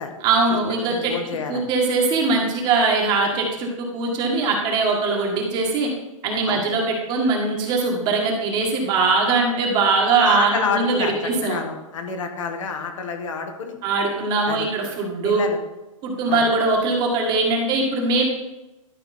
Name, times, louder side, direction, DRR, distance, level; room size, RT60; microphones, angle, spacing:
voice 1, 0.2-1.1 1.5-5.9 6.2-11.6 13.8-15.4 16.0-18.2, right 3 dB, 25° right, 0 dB, 1.6 m, -21 dB
voice 2, 0.9-1.7 6.5-6.6 10.2-13.8 14.5-14.7 15.2-15.6 16.3-16.4, left 5 dB, 65° left, 5 dB, 1.5 m, -28 dB
12.0 x 4.8 x 4.3 m, 1.0 s
hypercardioid pair, 155°, 18 cm